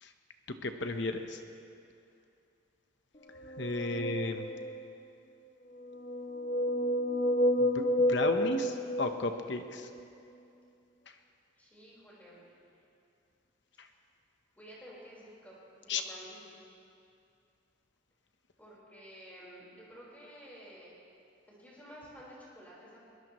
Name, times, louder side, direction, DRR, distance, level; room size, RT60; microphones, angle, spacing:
voice 1, 0.6-1.4 3.6-4.5 7.6-9.9 13.8-13.9 15.9-16.0, left 2 dB, 60° left, 6 dB, 1.0 m, -34 dB
sound 1, 3.3-4.9 5.8-9.7, left 1 dB, 30° left, 0.7 m, -30 dB
voice 2, 11.6-12.7 14.5-15.5 15.8-16.4 18.6-20.9 21.5-23.0, equal, 10° left, -7 dB, 4.6 m, -52 dB
22.5 x 20.5 x 3.1 m, 2.5 s
head